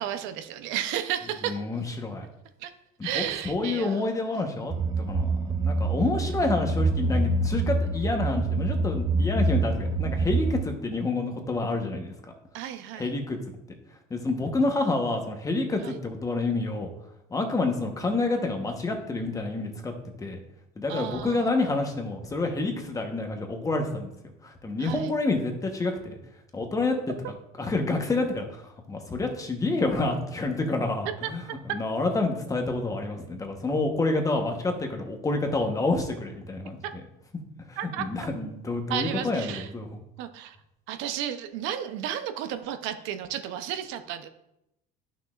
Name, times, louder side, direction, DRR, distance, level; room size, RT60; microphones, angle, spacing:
voice 1, 0.0-1.6 2.6-2.7 3.0-4.1 12.5-13.1 15.8-16.0 20.9-21.5 24.8-25.1 31.2-31.3 37.8-38.0 38.9-39.7 40.2-40.6 40.9-44.3, right 10 dB, 75° right, 9 dB, 0.7 m, -33 dB
voice 2, 1.5-2.2 3.1-5.3 5.6-12.1 13.0-13.4 14.1-16.9 17.3-19.9 20.2-20.4 20.8-24.1 24.4-26.2 26.5-27.1 27.6-28.6 28.9-31.4 31.7-36.8 37.7-39.9, left 2 dB, 15° left, 4 dB, 1.1 m, -28 dB
sound 1, 4.7-10.6, right 2 dB, 20° right, 0.6 m, -26 dB
11.0 x 6.0 x 2.5 m, 0.85 s
cardioid pair, 130°, 20 cm